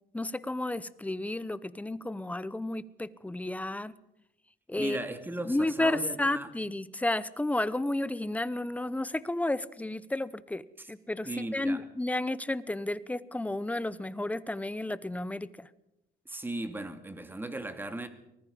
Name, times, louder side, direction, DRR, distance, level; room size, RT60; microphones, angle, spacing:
voice 1, 0.1-3.9 4.7-5.0 5.5-15.7, left 2 dB, 10° left, 0.9 m, -32 dB
voice 2, 4.8-6.5 10.8-10.9 11.2-11.8 16.2-18.1, right 1 dB, 10° right, 2.6 m, -37 dB
24.0 x 20.0 x 5.5 m
cardioid pair, 110°, 17 cm